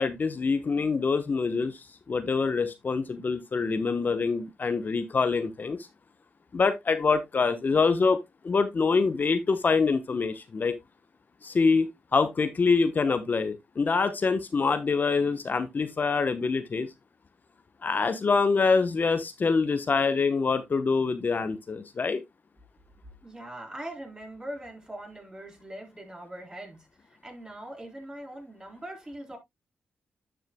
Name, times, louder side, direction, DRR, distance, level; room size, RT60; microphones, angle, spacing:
voice 1, 0.0-5.9 6.5-8.2 8.4-10.7 11.4-16.9 17.8-22.2, left 4 dB, 45° left, 0.9 m, -25 dB
voice 2, 23.2-29.4, right 1 dB, 20° right, 4.0 m, -41 dB
10.5 x 6.5 x 2.2 m
cardioid pair, 60°, 4 cm